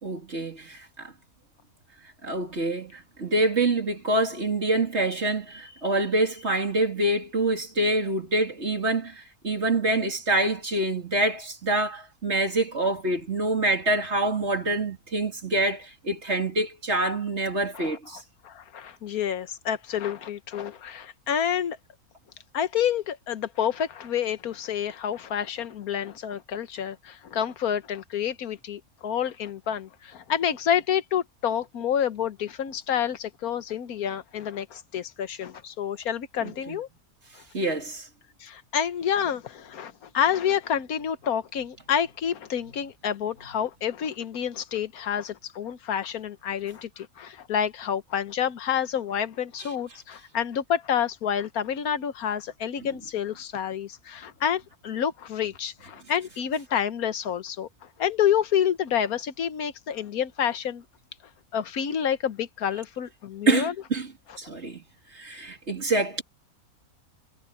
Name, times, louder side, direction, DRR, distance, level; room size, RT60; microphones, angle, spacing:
voice 1, 0.0-1.1 2.2-18.2 36.4-36.8 37.5-38.1 52.8-52.9 63.5-64.1 64.4-64.8 65.1-66.2, right 2 dB, 50° right, 3.5 m, -26 dB
voice 2, 17.7-21.8 22.5-36.9 38.4-57.7 58.0-60.8 61.5-63.9 64.3-64.4, left 9 dB, 85° left, 1.5 m, -28 dB
omnidirectional pair, 1.5 m